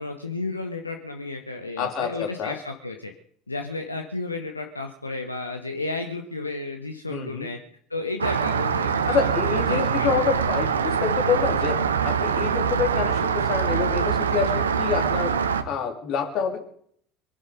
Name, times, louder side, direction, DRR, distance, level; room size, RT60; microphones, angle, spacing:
voice 1, 0.0-3.1 3.5-7.6 7.9-10.2, left 3 dB, 85° left, 5 dB, 1.2 m, -32 dB
voice 2, 1.8-2.6 7.1-7.5 9.1-11.8 12.0-15.3 15.7-16.6, left 6 dB, 45° left, 4 dB, 3.2 m, -27 dB
Rain, 8.2-15.6, right 7 dB, 75° right, 1.1 m, -24 dB
23.5 x 11.0 x 5.3 m, 0.63 s
figure-of-eight pair, 70°, 0 cm